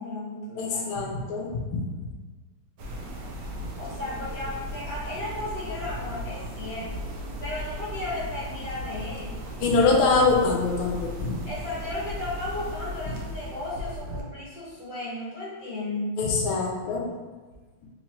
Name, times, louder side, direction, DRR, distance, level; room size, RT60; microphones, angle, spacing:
voice 1, 0.0-1.0 3.7-7.0 7.4-9.4 11.4-16.2, left 2 dB, 60° left, -7 dB, 1.5 m, -35 dB
voice 2, 0.6-1.8 9.6-11.3 16.2-17.1, left 4 dB, 90° left, 0 dB, 1.5 m, -24 dB
sound 1, 2.8-14.2, equal, 80° right, 0.8 m, -36 dB
3.9 x 2.9 x 2.8 m, 1.3 s
omnidirectional pair, 2.2 m